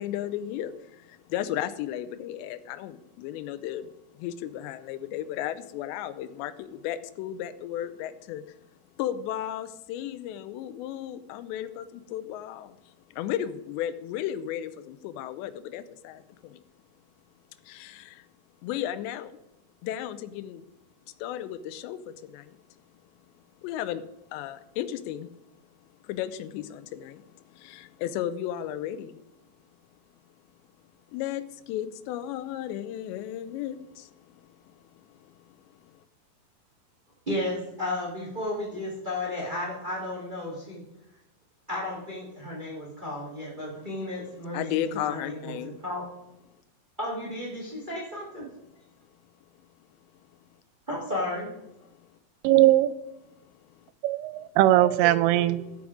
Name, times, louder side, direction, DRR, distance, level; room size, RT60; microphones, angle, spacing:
voice 1, 0.0-8.6 9.0-12.8 13.1-16.6 17.7-18.3 18.6-19.4 19.8-20.7 21.2-22.6 23.6-24.0 24.3-25.3 26.0-29.2 31.1-34.7 35.0-35.6 35.8-36.0 43.7-43.9 44.5-45.8 52.0-52.1 53.8-53.9, left 11 dB, 85° left, 2.8 m, -35 dB
voice 2, 37.3-40.8 41.7-46.0 47.0-48.4 50.9-51.5, left 1 dB, 35° right, 0.7 m, -33 dB
voice 3, 52.4-52.9 54.0-55.8, right 14 dB, 85° right, 2.8 m, -20 dB
13.5 x 7.1 x 5.0 m
omnidirectional pair, 5.0 m